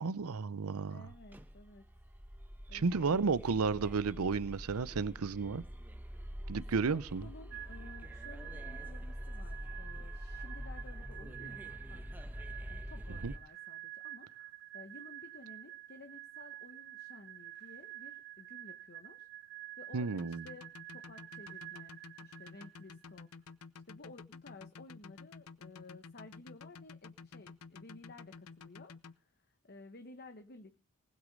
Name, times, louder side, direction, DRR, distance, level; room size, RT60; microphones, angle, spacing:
voice 1, 0.0-1.0 2.7-5.6 6.5-7.2 13.2-13.3 19.9-20.4, right 4 dB, 80° right, 0.6 m, -32 dB
voice 2, 0.9-1.9 2.7-4.0 6.2-6.3 6.6-12.2 12.7-14.5 14.7-23.5 23.9-30.8, left 2 dB, 45° left, 1.1 m, -55 dB
sound 1, 1.1-13.4, equal, 10° right, 1.0 m, -45 dB
sound 2, 7.5-23.1, right 15 dB, 55° right, 1.9 m, -49 dB
sound 3, 20.2-29.1, left 4 dB, 85° left, 0.7 m, -51 dB
19.0 x 8.3 x 5.3 m
head